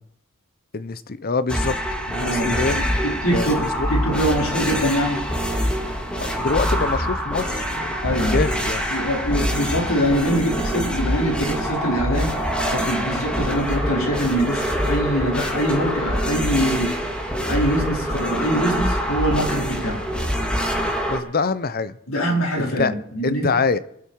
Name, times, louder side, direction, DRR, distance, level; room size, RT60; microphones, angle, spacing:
voice 1, 0.7-1.8 2.1-3.5 3.8-3.9 6.2-8.8 13.0-13.3 21.1-22.0 22.6-22.9 23.2-23.8, left 4 dB, 45° left, 15 dB, 0.7 m, -25 dB
sound 1, 1.5-21.2, equal, 5° left, 2.1 m, -25 dB
voice 2, 2.2-5.2 8.0-8.4 8.9-12.3 12.7-16.9 17.5-20.0 22.1-23.5, equal, 70° left, -2 dB, 4.4 m, -23 dB
23.5 x 8.5 x 4.6 m, 0.72 s
head